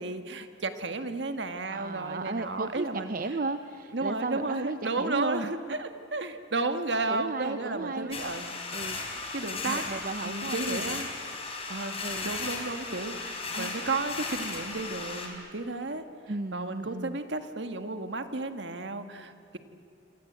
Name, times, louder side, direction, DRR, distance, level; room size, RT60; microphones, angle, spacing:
voice 1, 0.0-3.2 3.9-8.6 9.3-9.8 10.2-11.1 11.7-16.0 16.5-19.6, right 3 dB, 65° right, 8 dB, 1.7 m, -33 dB
voice 2, 1.7-5.5 7.1-8.4 8.7-9.0 9.6-11.0 12.0-12.4 13.5-13.7 16.3-17.2, right 3 dB, 50° right, 9 dB, 0.8 m, -34 dB
sound 1, 8.1-15.3, left 4 dB, 35° left, 4.3 m, -36 dB
27.0 x 27.0 x 8.1 m, 2.4 s
head